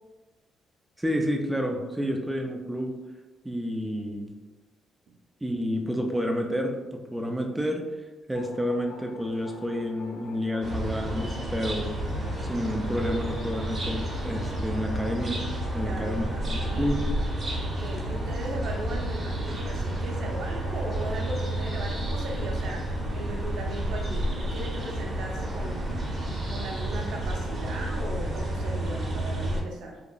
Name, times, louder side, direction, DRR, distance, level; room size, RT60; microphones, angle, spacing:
voice 1, 1.0-3.0 3.4-4.3 5.4-7.9 8.3-11.9 12.4-15.4 15.7-17.0, equal, 10° right, 2 dB, 0.3 m, -30 dB
sound 1, 8.3-17.1, left 3 dB, 80° left, 0.3 m, -46 dB
sound 2, 10.6-29.6, right 1 dB, 40° right, 0.7 m, -30 dB
voice 2, 15.8-16.2 16.7-16.9 17.6-26.0 26.5-30.0, right 2 dB, 75° right, -1 dB, 0.6 m, -37 dB
2.9 x 2.4 x 2.2 m, 1.2 s
cardioid pair, 90°, 0 cm